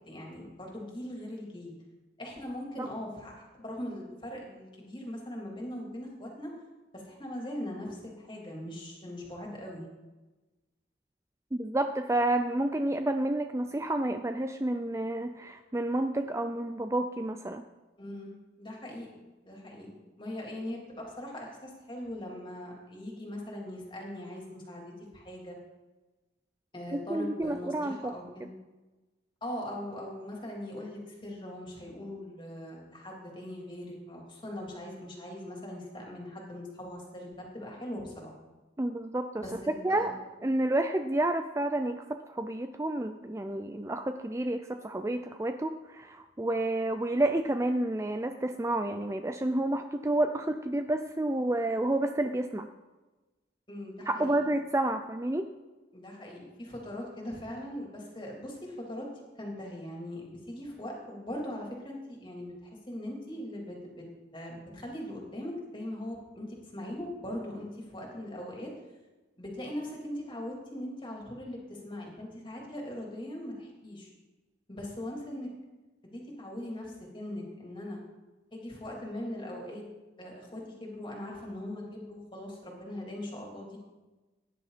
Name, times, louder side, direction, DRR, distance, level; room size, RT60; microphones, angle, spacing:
voice 1, 0.0-1.7 2.2-6.5 6.9-9.9 18.0-18.3 18.6-19.1 19.4-25.6 26.7-28.5 29.4-38.3 39.4-40.1 53.7-54.4 55.9-64.0 64.3-68.7 69.4-74.1 74.7-75.5 76.1-78.0 78.5-79.8 80.2-83.8, left 1 dB, 25° left, -1 dB, 3.2 m, -40 dB
voice 2, 11.5-17.7 26.9-28.1 28.4-28.5 38.8-40.1 40.4-52.7 54.1-55.5, right 1 dB, 15° right, 8 dB, 0.4 m, -30 dB
17.0 x 10.5 x 4.2 m, 1.2 s
head